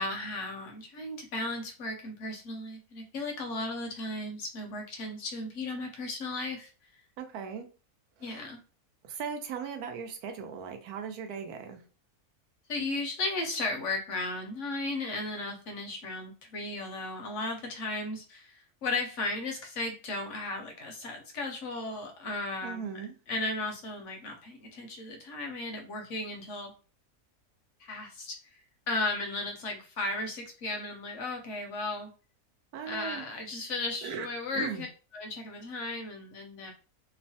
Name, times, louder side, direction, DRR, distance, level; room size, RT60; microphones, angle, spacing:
voice 1, 0.0-6.7 8.2-8.6 12.7-22.9 23.3-26.7 27.8-28.4 28.9-32.1 32.8-34.9 35.1-36.7, left 2 dB, 65° left, 3 dB, 0.8 m, -35 dB
voice 2, 7.2-7.7 8.2-8.4 9.0-11.8 22.6-23.1 32.7-33.2 34.0-34.3 34.5-34.8, right 7 dB, 85° right, 6 dB, 1.1 m, -38 dB
2.9 x 2.1 x 2.7 m, 0.35 s
omnidirectional pair, 1.6 m